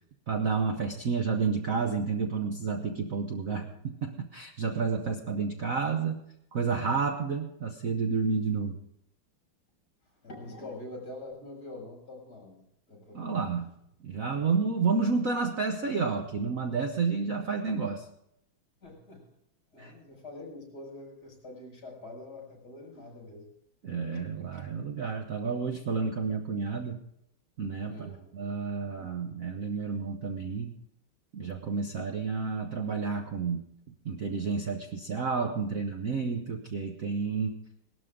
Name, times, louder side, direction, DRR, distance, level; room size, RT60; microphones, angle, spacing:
voice 1, 0.3-6.2 6.5-8.8 13.1-13.7 14.0-18.1 19.8-19.9 23.8-27.0 27.6-30.7 31.3-37.6, right 5 dB, 50° right, 4 dB, 1.1 m, -30 dB
voice 2, 3.5-3.8 5.0-5.1 10.2-13.5 18.8-19.2 19.7-23.5 27.9-28.3, left 2 dB, 45° left, -1 dB, 6.5 m, -45 dB
19.0 x 12.5 x 3.7 m, 0.77 s
omnidirectional pair, 2.3 m